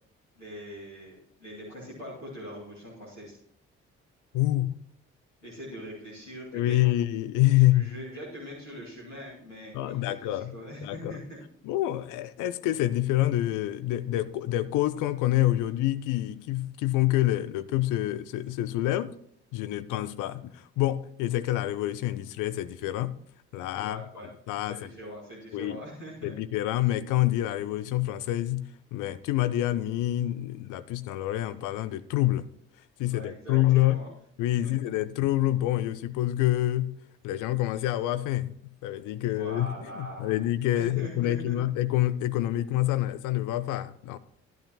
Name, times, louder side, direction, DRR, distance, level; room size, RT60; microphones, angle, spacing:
voice 1, 0.4-3.3 5.4-6.8 7.5-11.4 23.8-24.3 24.7-26.4 33.1-34.1 34.6-34.7 39.3-40.4 40.7-41.6, equal, 90° left, 2.3 m, -42 dB
voice 2, 4.3-4.7 6.5-7.9 9.7-10.5 10.8-11.2 11.6-19.1 19.5-23.2 23.5-24.0 24.5-24.9 25.5-25.8 26.2-32.4 33.0-34.0 34.4-36.9 37.2-38.5 38.8-39.7 39.9-44.2, left 15 dB, 60° left, 0.7 m, -27 dB
13.0 x 11.5 x 3.0 m
figure-of-eight pair, 40°, 35 cm